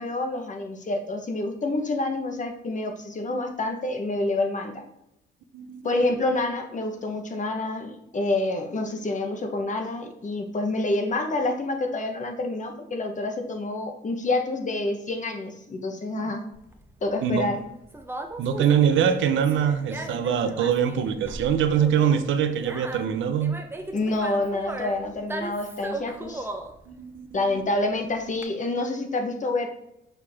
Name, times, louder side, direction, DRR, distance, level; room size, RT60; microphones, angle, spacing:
voice 1, 0.0-4.8 5.8-16.4 17.0-17.6 23.9-26.5 27.3-29.7, left 2 dB, 40° left, 4 dB, 1.3 m, -28 dB
Conversation, 16.5-28.4, right 2 dB, 10° right, 0.9 m, -38 dB
voice 2, 18.4-23.6 26.9-27.6, right 8 dB, 75° right, 9 dB, 0.8 m, -23 dB
6.5 x 4.8 x 3.6 m, 0.81 s
cardioid pair, 90°, 20 cm